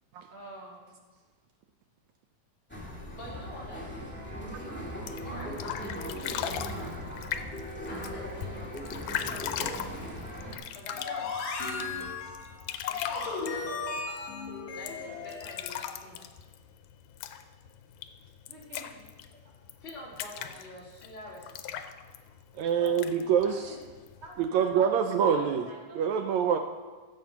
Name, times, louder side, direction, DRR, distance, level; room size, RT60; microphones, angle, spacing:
voice 1, 0.3-0.8 1.1-1.2 8.1-8.4 10.9-11.2 18.5-19.0 19.4-19.5 22.0-22.1 22.8-23.9 24.2-24.9 25.2-26.0, right 2 dB, 40° right, -5 dB, 3.5 m, -47 dB
sound 1, 2.7-10.5, equal, 5° left, 1.3 m, -39 dB
voice 2, 3.2-4.0 5.2-7.0 7.9-8.7 9.2-9.9 10.7-11.3 11.6-12.1 12.8-13.7 14.7-16.3 19.8-21.8, left 1 dB, 40° left, -5 dB, 3.6 m, -45 dB
sound 2, 4.9-24.5, left 10 dB, 90° left, 2.3 m, -40 dB
sound 3, 11.0-15.9, left 4 dB, 65° left, 2.5 m, -36 dB
voice 3, 22.6-23.7 24.4-25.7 25.9-26.6, right 7 dB, 80° right, 6 dB, 1.7 m, -25 dB
15.0 x 7.6 x 5.7 m, 1.4 s
omnidirectional pair, 3.7 m